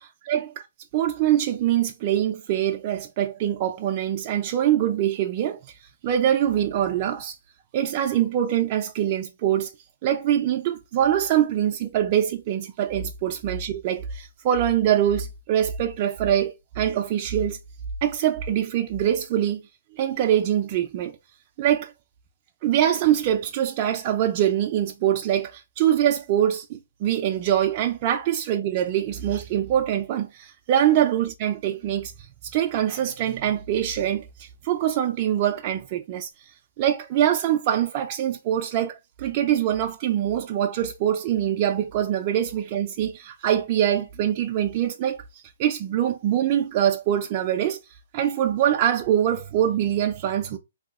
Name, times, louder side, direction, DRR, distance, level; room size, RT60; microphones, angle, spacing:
voice 1, 0.3-0.7 0.9-7.4 7.7-9.7 10.0-17.6 18.0-19.6 19.9-21.2 21.6-21.9 22.6-47.8 48.1-50.6, right 10 dB, 35° right, 0.3 m, -24 dB
3.4 x 2.7 x 2.4 m
hypercardioid pair, 150°, 0 cm